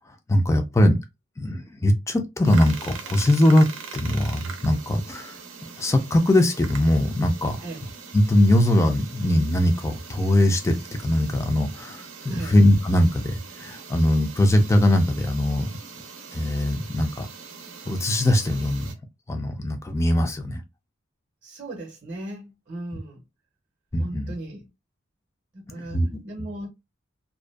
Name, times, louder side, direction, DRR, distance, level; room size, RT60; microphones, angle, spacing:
voice 1, 0.3-1.0 1.4-3.7 3.9-7.6 8.1-12.1 12.4-15.7 16.3-17.3 17.9-18.9 19.3-20.6 23.9-24.3 25.7-26.2, left 1 dB, 15° left, 0.3 m, -21 dB
sound 1, 2.4-18.9, right 5 dB, 90° right, 0.5 m, -42 dB
voice 2, 21.4-23.2 24.0-24.7 25.5-26.7, right 1 dB, 35° right, 0.6 m, -37 dB
2.5 x 2.2 x 2.2 m
head